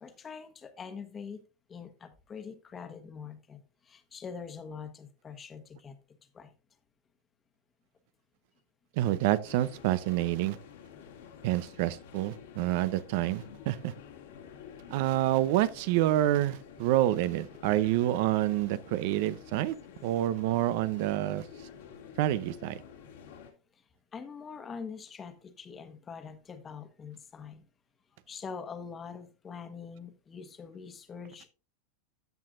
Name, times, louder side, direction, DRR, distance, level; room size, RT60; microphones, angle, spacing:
voice 1, 0.0-1.4 1.7-6.0 6.3-6.5 24.1-27.6 28.3-31.5, left 6 dB, 25° left, 1.3 m, -44 dB
voice 2, 9.0-10.6 11.4-13.9 14.9-19.8 20.0-21.5 22.2-22.8, right 14 dB, 65° right, 0.7 m, -28 dB
sound 1, 9.4-23.5, left 8 dB, 80° left, 2.3 m, -50 dB
14.0 x 6.0 x 2.5 m
hypercardioid pair, 115°, 0 cm